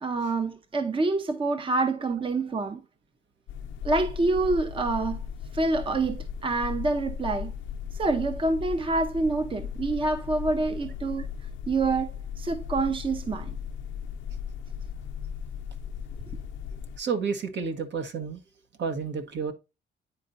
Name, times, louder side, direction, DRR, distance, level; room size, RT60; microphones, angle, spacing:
voice 1, 0.0-2.8 3.8-5.2 5.5-7.5 7.9-11.3 11.7-13.5, right 3 dB, 25° right, 0.7 m, -27 dB
sound 1, 3.5-17.0, left 7 dB, 75° left, 0.6 m, -37 dB
voice 2, 17.0-18.4 18.8-19.5, right 5 dB, 65° right, 1.5 m, -30 dB
9.8 x 4.4 x 2.6 m
cardioid pair, 90°, 20 cm